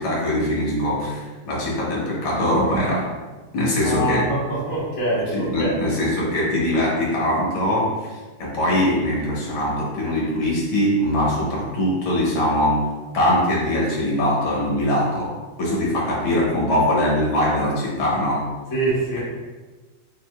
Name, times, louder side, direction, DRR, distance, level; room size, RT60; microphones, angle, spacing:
voice 1, 0.0-3.1 3.5-4.3 5.3-12.9 13.1-15.3 15.6-18.4 19.2-19.3, left 1 dB, 85° left, -5 dB, 2.0 m, -22 dB
voice 2, 3.8-5.8 18.7-19.2, right 1 dB, 20° left, -7 dB, 0.6 m, -24 dB
5.8 x 2.6 x 2.3 m, 1.3 s
omnidirectional pair, 2.2 m